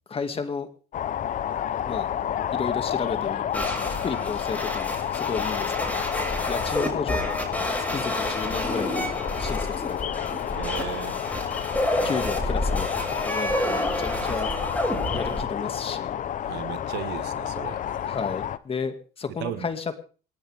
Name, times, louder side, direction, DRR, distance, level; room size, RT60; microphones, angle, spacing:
voice 1, 0.1-0.7 1.9-2.1 2.5-5.9 6.5-7.3 7.9-10.1 12.0-12.9 13.2-14.5 15.1-16.1 18.0-19.9, left 5 dB, 35° left, 2.3 m, -33 dB
sound 1, 0.9-18.6, left 10 dB, 50° left, 0.9 m, -30 dB
sound 2, 3.5-15.4, left 1 dB, 10° left, 7.1 m, -29 dB
voice 2, 10.6-11.2 16.4-17.8 19.4-19.7, right 14 dB, 85° right, 1.8 m, -35 dB
28.0 x 10.5 x 3.6 m
cardioid pair, 110°, 17 cm